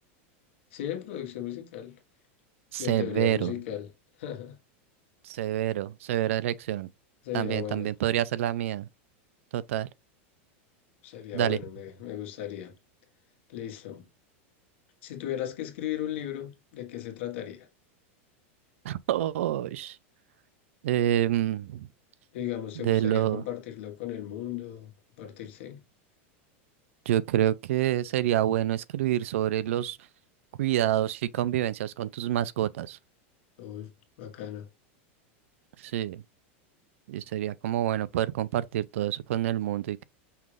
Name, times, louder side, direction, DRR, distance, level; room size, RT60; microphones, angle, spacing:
voice 1, 0.7-2.0 2.8-3.9 4.2-4.6 7.2-7.9 11.0-12.7 13.5-14.1 15.0-17.7 22.3-24.9 25.2-25.8 33.6-33.9 34.2-34.7, left 11 dB, 65° left, 1.4 m, -36 dB
voice 2, 2.7-3.5 5.2-6.9 7.3-8.9 9.5-9.9 11.3-11.6 18.8-20.0 20.8-21.9 22.8-23.4 27.1-30.0 30.6-33.0 35.8-36.2 37.1-40.0, right 12 dB, 80° right, 0.4 m, -27 dB
5.6 x 2.5 x 3.2 m
supercardioid pair, 170°, 7 cm